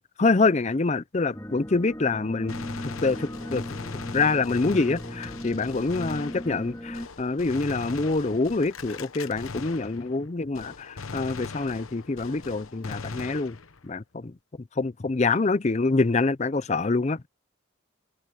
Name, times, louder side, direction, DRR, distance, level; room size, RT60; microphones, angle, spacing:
voice 1, 0.0-2.5 2.8-3.6 4.1-13.6 13.8-14.3 14.8-17.3, left 3 dB, 30° left, 0.5 m, -26 dB
sound 1, 1.3-7.1, equal, 15° left, 2.0 m, -38 dB
Gunshot gunfire, 2.5-10.3 10.5-13.9, left 4 dB, 85° left, 1.1 m, -40 dB
head